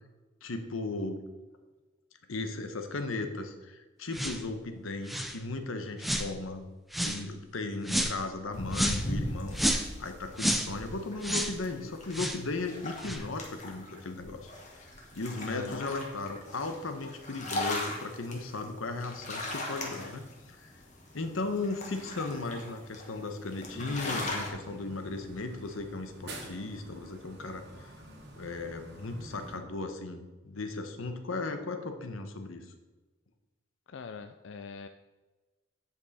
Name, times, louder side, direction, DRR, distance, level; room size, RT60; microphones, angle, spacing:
voice 1, 0.4-1.2 2.3-6.6 7.0-14.5 15.1-20.3 20.6-20.7 21.1-27.9 28.4-32.6, left 3 dB, 90° left, 7 dB, 1.0 m, -36 dB
sound 1, 4.1-4.4 5.1-5.4 6.0-6.3 6.9-7.2 7.9-8.2 8.7-9.1 9.5-9.9 10.4-10.7 11.2-11.6 12.1-12.4 13.0-13.2, equal, ahead, 0.5 m, -30 dB
sound 2, 8.5-24.5, left 1 dB, 40° left, 1.5 m, -39 dB
voice 2, 15.5-15.9 33.9-34.9, left 5 dB, 60° left, 8 dB, 0.4 m, -42 dB
sound 3, 23.7-29.6, right 1 dB, 55° right, 1.4 m, -48 dB
9.4 x 5.4 x 4.2 m, 1.2 s
head